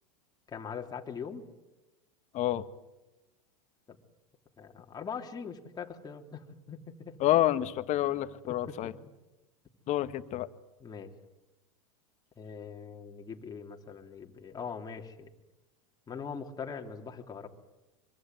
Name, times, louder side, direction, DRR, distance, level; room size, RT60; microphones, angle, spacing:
voice 1, 0.5-1.5 3.9-4.0 4.6-7.2 8.7-8.8 10.8-11.1 12.4-15.3 16.1-17.5, left 6 dB, 20° left, 3 dB, 3.2 m, -41 dB
voice 2, 7.2-8.9 9.9-10.5, left 13 dB, 40° left, 12 dB, 1.6 m, -28 dB
24.5 x 24.5 x 9.3 m, 1.0 s
hypercardioid pair, 110°, 18 cm